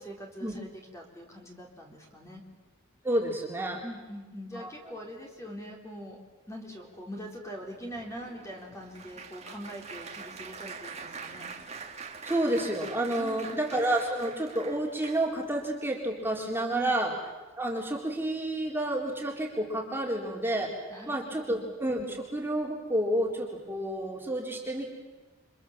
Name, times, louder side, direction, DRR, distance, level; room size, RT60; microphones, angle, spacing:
voice 1, 0.0-2.4 3.8-6.2 6.5-11.5 13.2-13.7 16.7-17.0 20.9-21.6, equal, 15° left, 0 dB, 4.1 m, -43 dB
voice 2, 3.0-3.8 4.6-4.7 12.2-17.1 17.6-20.7 21.1-24.9, right 1 dB, 10° right, -1 dB, 3.9 m, -30 dB
Applause, 7.2-15.5 16.2-16.4 16.7-16.9, right 5 dB, 30° right, 2.2 m, -44 dB
29.5 x 25.0 x 7.5 m, 1.2 s
head